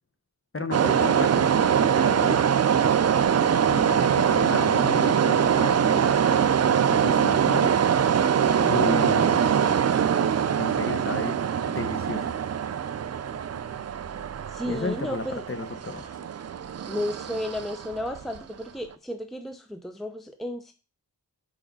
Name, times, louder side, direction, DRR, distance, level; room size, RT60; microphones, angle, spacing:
voice 1, 0.5-2.5 3.7-6.2 6.9-7.7 8.7-9.4 10.6-11.4 11.7-12.3 14.6-16.2, left 3 dB, 30° left, 7 dB, 1.1 m, -33 dB
sound 1, 0.7-18.4, right 8 dB, 40° right, 0.4 m, -23 dB
voice 2, 8.5-9.7 14.5-15.4 16.9-20.7, left 1 dB, ahead, 6 dB, 0.7 m, -34 dB
4.9 x 4.8 x 5.4 m, 0.35 s
cardioid pair, 60°, 42 cm